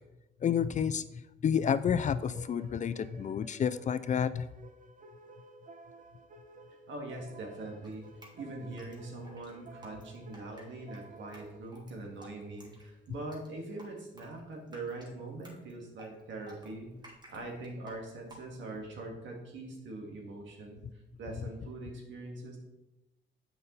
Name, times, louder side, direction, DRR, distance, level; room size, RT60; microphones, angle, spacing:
voice 1, 0.4-4.5, left 8 dB, 40° left, 14 dB, 0.4 m, -30 dB
sound 1, 2.2-11.6, right 3 dB, 40° right, 0.9 m, -54 dB
voice 2, 6.9-8.1 8.3-16.9 17.3-20.8 21.2-22.6, right 2 dB, 70° right, 1 dB, 2.1 m, -42 dB
Drip, 7.8-18.8, equal, 20° right, 2.0 m, -56 dB
7.8 x 5.4 x 4.0 m, 0.98 s
cardioid pair, 90°, 20 cm